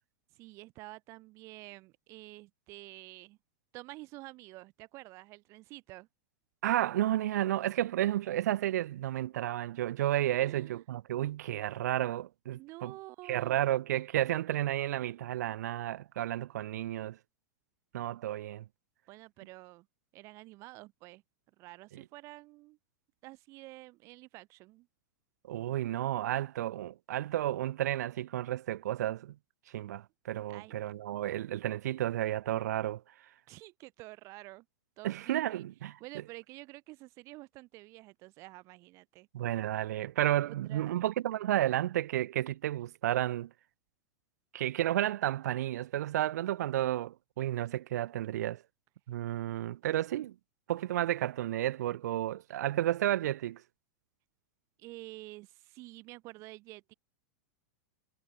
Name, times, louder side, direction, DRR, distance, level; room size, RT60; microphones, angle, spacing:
voice 1, 0.3-3.4 3.7-6.1 10.4-10.8 12.5-13.6 19.1-19.9 20.1-21.2 21.6-22.8 23.2-24.9 30.5-30.8 33.5-34.7 35.0-35.7 36.0-39.3 40.4-41.0 54.8-56.9, right 21 dB, 35° right, 0.5 m, -49 dB
voice 2, 6.6-12.9 13.3-17.2 17.9-18.6 25.5-29.3 29.7-33.0 35.0-36.0 39.3-43.5 44.5-48.6 49.1-50.3 50.7-53.6, right 13 dB, 80° right, 0.5 m, -32 dB
supercardioid pair, 150°, 9 cm